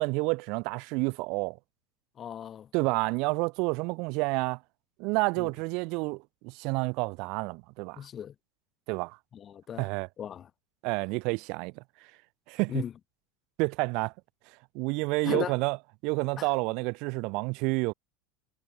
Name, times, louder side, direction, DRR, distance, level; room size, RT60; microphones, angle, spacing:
voice 1, 0.0-1.6 2.7-4.6 5.0-8.0 8.9-9.2 9.8-10.1 10.8-11.8 12.5-12.8 13.6-14.1 14.7-15.8 16.0-17.9, right 28 dB, 60° right, 1.2 m, -29 dB
voice 2, 2.2-2.7 5.4-5.5 8.0-8.3 9.3-9.9 10.2-10.5 12.7-12.9 15.2-15.5 16.4-16.5, left 9 dB, 35° left, 0.4 m, -36 dB
hypercardioid pair, 90°, 0 cm